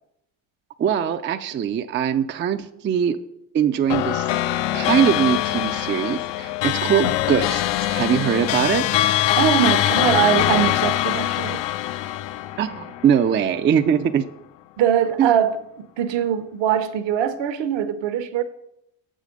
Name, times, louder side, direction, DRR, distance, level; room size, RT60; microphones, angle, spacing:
voice 1, 0.8-3.2 3.5-4.3 4.7-8.8 12.6-14.2 15.2-15.3, right 8 dB, 25° right, 0.3 m, -21 dB
sound 1, 3.9-13.5, left 13 dB, 65° left, 0.5 m, -23 dB
voice 2, 9.4-11.6 14.8-18.4, right 9 dB, 65° right, 0.8 m, -22 dB
6.5 x 4.9 x 5.2 m
supercardioid pair, 80°, 48 cm